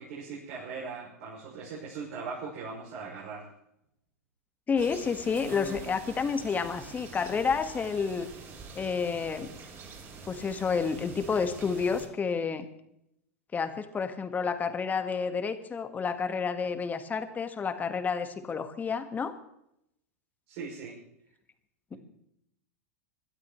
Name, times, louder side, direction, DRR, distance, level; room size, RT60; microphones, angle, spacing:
voice 1, 0.0-3.5 20.5-21.0 21.9-22.0, right 5 dB, 60° right, -4 dB, 6.4 m, -40 dB
voice 2, 4.7-8.3 8.7-9.5 10.2-12.7 13.5-19.3, left 5 dB, 20° left, 9 dB, 1.6 m, -30 dB
sound 1, 4.8-12.1, right 4 dB, 30° right, 6.3 m, -45 dB
26.0 x 12.5 x 3.2 m, 0.77 s
hypercardioid pair, 105°, 8 cm